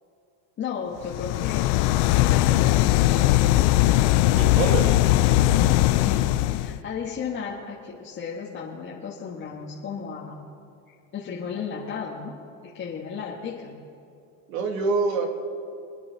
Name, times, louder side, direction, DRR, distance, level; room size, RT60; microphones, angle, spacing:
voice 1, 0.6-1.7 2.1-3.4 6.0-10.4 11.1-12.3 12.6-13.8, left 6 dB, 30° left, -4 dB, 1.7 m, -34 dB
sound 1, 1.1-6.8, left 15 dB, 60° left, 0.7 m, -20 dB
voice 2, 4.3-5.0 14.5-15.3, right 4 dB, 80° right, 3 dB, 2.6 m, -25 dB
27.0 x 10.0 x 4.1 m, 2.6 s
supercardioid pair, 140°, 40 cm